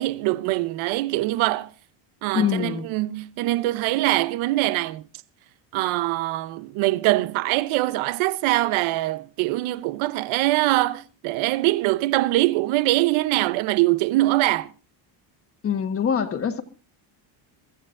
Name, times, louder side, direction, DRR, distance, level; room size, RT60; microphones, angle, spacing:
voice 1, 0.0-1.7 2.2-5.0 5.7-14.7, right 18 dB, 85° right, 0.8 m, -23 dB
voice 2, 2.3-2.9 15.6-16.6, left 7 dB, 30° left, 1.3 m, -24 dB
24.0 x 14.5 x 2.5 m
cardioid pair, 175°, 46 cm